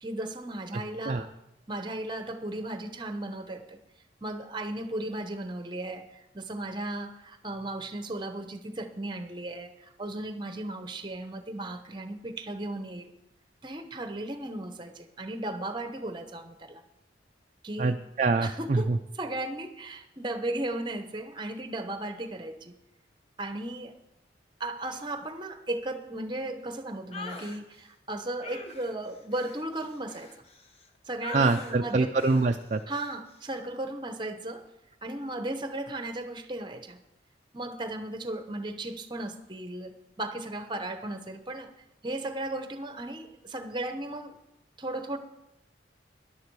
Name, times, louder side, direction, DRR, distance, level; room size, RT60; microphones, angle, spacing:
voice 1, 0.0-1.3 1.7-3.8 4.2-13.1 13.6-16.8 17.6-18.0 18.4-18.9 19.1-22.7 23.4-24.0 24.6-30.3 31.1-32.2 32.9-34.6 35.0-37.0 37.5-41.7 42.0-44.4 44.8-45.2, right 1 dB, 25° right, 8 dB, 1.0 m, -36 dB
voice 2, 17.8-19.0 31.3-32.8, right 3 dB, 40° right, 5 dB, 0.4 m, -25 dB
sound 1, 27.1-27.6 28.4-30.9 31.2-31.8 32.2-32.5 32.9-33.2, left 2 dB, 35° left, 1.1 m, -43 dB
13.5 x 11.0 x 4.7 m, 0.90 s
head